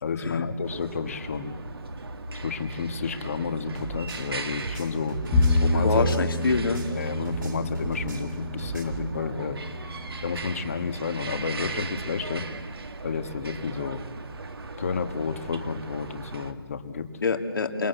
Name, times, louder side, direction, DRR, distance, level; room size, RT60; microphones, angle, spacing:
voice 1, 0.0-1.6 2.3-5.2 5.6-6.0 6.9-9.6 10.2-12.4 13.0-14.0 14.8-17.1, left 5 dB, 35° left, 9 dB, 1.7 m, -31 dB
sound 1, 0.6-16.5, right 3 dB, 75° right, 2.3 m, -37 dB
sound 2, 3.7-7.0 7.2-9.1, right 4 dB, 55° right, 3.3 m, -37 dB
Bowed string instrument, 5.3-11.7, left 2 dB, 5° left, 1.8 m, -29 dB
voice 2, 5.8-6.8 17.2-17.9, left 4 dB, 65° left, 6 dB, 2.6 m, -25 dB
28.0 x 20.0 x 8.1 m, 1.3 s
hypercardioid pair, 175°, 13 cm